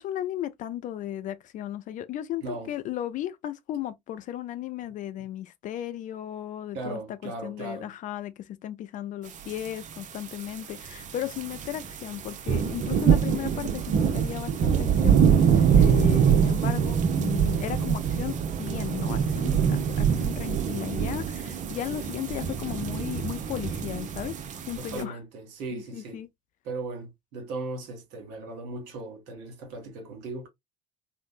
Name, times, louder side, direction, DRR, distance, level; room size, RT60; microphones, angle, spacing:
voice 1, 0.0-24.3 24.7-25.2 25.7-26.3, left 12 dB, 40° left, 0.4 m, -35 dB
voice 2, 2.4-2.7 6.7-7.9 24.8-26.2 26.6-30.5, right 3 dB, 60° right, 1.1 m, -37 dB
sound 1, 9.5-9.7 9.9-25.0, right 7 dB, 40° right, 0.6 m, -24 dB
Bowed string instrument, 18.2-24.2, right 3 dB, ahead, 1.5 m, -49 dB
3.1 x 2.0 x 2.4 m
figure-of-eight pair, 65°, 20 cm